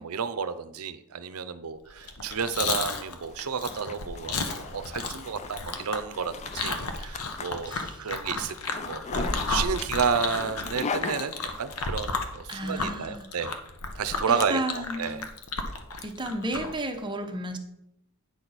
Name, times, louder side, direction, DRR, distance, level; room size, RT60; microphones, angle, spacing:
voice 1, 0.0-13.6 14.0-15.2, right 6 dB, 70° right, 12 dB, 0.6 m, -31 dB
Chewing mastication, 2.0-16.8, left 3 dB, 80° left, 1.0 m, -33 dB
Zipper (clothing), 3.3-12.0, left 4 dB, 30° left, 0.4 m, -39 dB
voice 2, 7.7-8.1 12.5-13.3 14.3-15.3 16.0-17.6, right 1 dB, 20° right, 5 dB, 0.8 m, -33 dB
9.4 x 6.2 x 4.1 m, 0.83 s
head